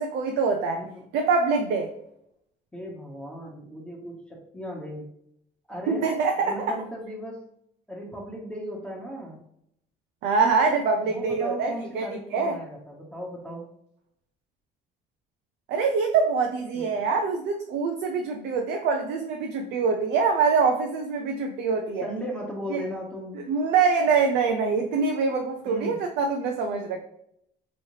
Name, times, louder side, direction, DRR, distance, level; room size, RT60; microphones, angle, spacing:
voice 1, 0.0-0.8 1.1-1.9 5.9-6.7 10.2-12.0 12.3-12.6 15.7-22.1 22.7-22.8 23.3-27.0, right 5 dB, 85° right, 3 dB, 0.5 m, -24 dB
voice 2, 2.7-5.1 5.7-6.1 6.4-7.4 7.9-9.4 11.0-13.7 16.7-17.0 22.0-23.4 25.6-26.0, equal, 5° left, -3 dB, 1.0 m, -36 dB
4.7 x 3.1 x 2.8 m, 0.74 s
cardioid pair, 110°, 17 cm